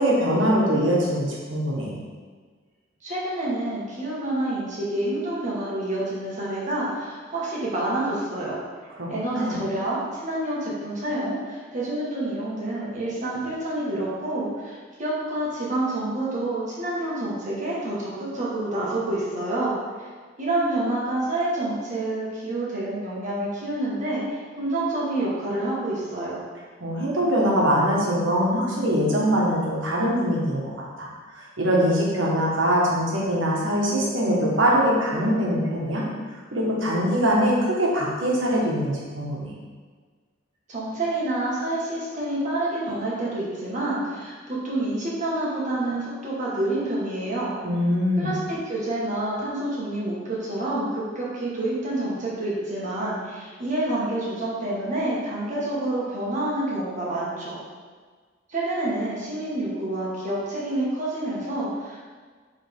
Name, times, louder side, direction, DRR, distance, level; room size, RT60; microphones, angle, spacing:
voice 1, 0.0-1.9 9.0-9.6 26.8-30.7 31.0-31.1 31.6-36.0 36.5-39.5 47.6-48.3, equal, 70° right, -4 dB, 1.5 m, -22 dB
voice 2, 3.0-8.6 9.1-19.7 20.4-26.4 40.7-47.5 48.2-57.6 58.5-62.0, right 1 dB, 40° right, -6 dB, 1.7 m, -28 dB
7.2 x 3.6 x 3.6 m, 1.5 s
head